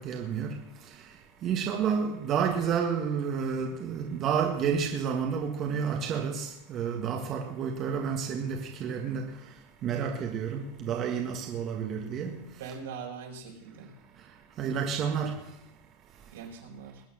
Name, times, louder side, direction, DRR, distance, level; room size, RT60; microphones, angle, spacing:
voice 1, 0.0-12.8 14.2-15.6, right 7 dB, 30° right, 1.7 m, -31 dB
voice 2, 12.5-13.9 16.3-17.0, right 6 dB, 80° right, 4.8 m, -42 dB
21.0 x 8.3 x 6.5 m
supercardioid pair, 155°, 0 cm